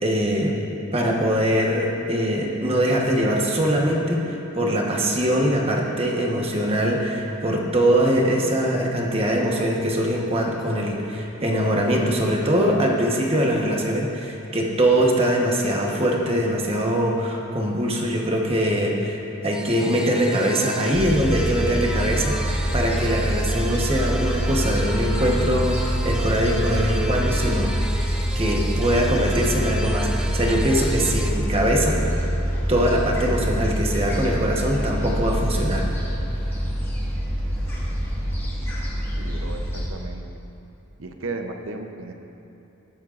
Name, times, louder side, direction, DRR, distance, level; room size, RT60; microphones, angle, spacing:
voice 1, 0.0-0.6 0.9-27.8 28.3-32.2 32.7-35.9, equal, 25° right, -1 dB, 1.2 m, -22 dB
sound 1, 19.5-31.3, right 1 dB, 5° right, 0.4 m, -35 dB
Gull seagull, 20.9-39.9, equal, 10° left, 1.7 m, -25 dB
voice 2, 39.2-40.2 41.0-42.1, right 3 dB, 65° right, 5 dB, 0.8 m, -34 dB
19.5 x 8.9 x 2.5 m, 2.9 s
head